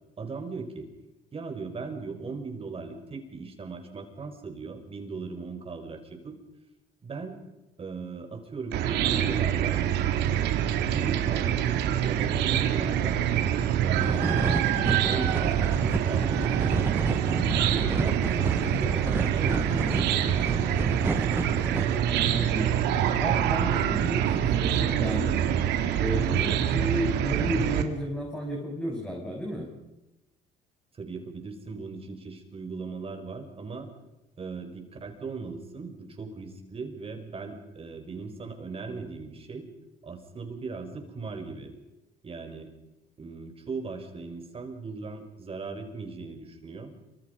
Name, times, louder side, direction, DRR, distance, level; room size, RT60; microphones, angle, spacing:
voice 1, 0.2-0.9 1.3-6.4 7.0-7.4 7.8-9.8 10.8-13.3 13.8-14.6 15.0-20.7 31.0-33.9 34.4-39.7 40.0-41.7 42.2-42.7 43.2-46.9, right 4 dB, 35° right, 4 dB, 5.8 m, -38 dB
Chicken rooster / Cricket, 8.7-27.8, right 10 dB, 85° right, 3.0 m, -25 dB
sound 1, 14.0-22.0, right 3 dB, 15° right, 0.7 m, -31 dB
voice 2, 22.1-25.4 26.0-29.7, equal, 5° left, 0 dB, 6.2 m, -33 dB
27.5 x 26.0 x 5.5 m, 0.99 s
cardioid pair, 110°, 17 cm